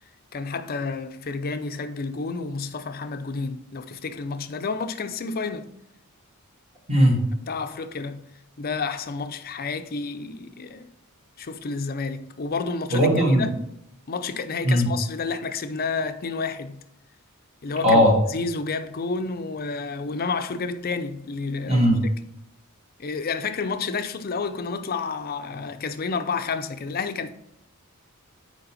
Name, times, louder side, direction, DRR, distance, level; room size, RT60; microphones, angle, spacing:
voice 1, 0.3-5.7 7.4-8.3 8.6-10.9 11.4-13.5 14.1-16.8 17.6-18.0 18.3-21.9 23.0-27.3, left 4 dB, 45° left, 0.5 m, -30 dB
voice 2, 6.9-7.2 12.9-13.5 14.6-14.9 17.8-18.1 21.6-22.0, equal, 30° right, 1.7 m, -18 dB
6.8 x 4.6 x 4.2 m
head